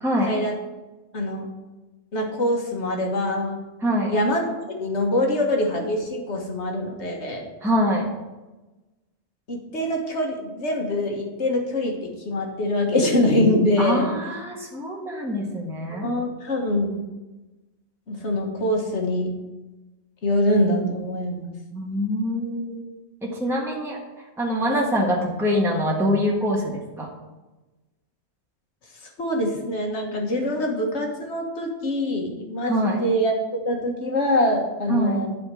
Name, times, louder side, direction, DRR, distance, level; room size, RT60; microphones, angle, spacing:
voice 1, 0.0-0.3 3.8-4.2 7.6-8.1 13.8-16.1 21.7-22.8 23.2-24.0 24.4-27.1 32.7-33.0 34.9-35.2, equal, ahead, -3 dB, 1.4 m, -24 dB
voice 2, 1.1-1.5 2.1-3.6 4.1-7.5 9.5-14.1 15.9-16.9 18.1-19.3 20.2-21.5 29.2-35.3, left 1 dB, 80° left, 1 dB, 1.8 m, -24 dB
11.5 x 4.3 x 7.6 m, 1.1 s
omnidirectional pair, 1.1 m